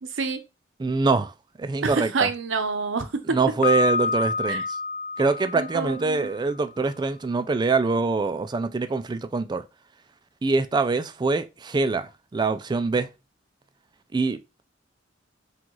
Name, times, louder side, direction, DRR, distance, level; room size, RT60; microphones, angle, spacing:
voice 1, 0.0-0.4 1.8-3.4 4.5-4.6 5.5-6.3, right 4 dB, 70° right, 0.7 m, -27 dB
voice 2, 0.8-2.3 3.3-4.8 5.2-9.6 10.4-13.1 14.1-14.6, right 3 dB, 20° right, 0.3 m, -24 dB
Piano, 3.6-6.5, left 4 dB, 35° left, 0.6 m, -28 dB
4.6 x 2.4 x 3.8 m
head